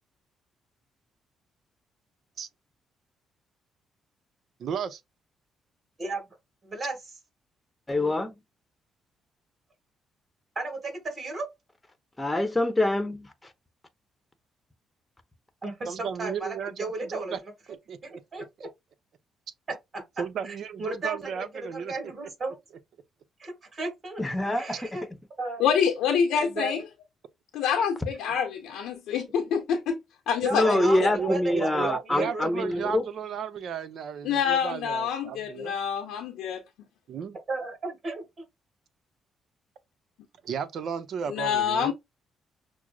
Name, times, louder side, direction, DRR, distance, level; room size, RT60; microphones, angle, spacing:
voice 1, 4.6-5.0 15.9-17.4 17.7-18.2 18.6-18.7 20.2-21.9 30.7-35.8 37.1-37.3 40.4-41.9, right 7 dB, 65° right, 0.7 m, -34 dB
voice 2, 6.0-6.3 6.6-7.0 10.5-11.5 15.6-17.3 18.0-18.7 19.9-20.0 20.4-22.6 23.4-24.2 24.5-25.0 25.4-25.7 26.3-26.7 30.4-32.5 37.5-38.2, right 2 dB, 35° right, 2.7 m, -34 dB
voice 3, 7.9-8.3 12.2-13.3 24.2-24.9 30.5-33.0, left 2 dB, 15° left, 0.9 m, -25 dB
voice 4, 25.6-26.8 27.5-30.0 30.3-31.1 34.2-36.6 41.3-41.9, left 7 dB, 85° left, 0.7 m, -26 dB
6.0 x 2.1 x 2.3 m
cardioid pair, 90°, 0 cm